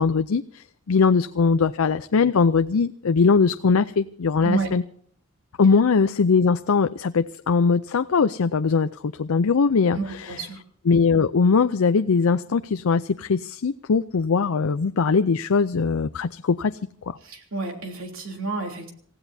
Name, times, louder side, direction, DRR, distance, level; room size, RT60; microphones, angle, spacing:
voice 1, 0.0-4.8 5.6-10.4 10.9-16.8, left 5 dB, 85° left, 11 dB, 0.5 m, -21 dB
voice 2, 9.9-10.6 17.2-18.9, right 4 dB, 70° right, 3 dB, 3.3 m, -30 dB
28.0 x 16.0 x 2.7 m, 0.62 s
head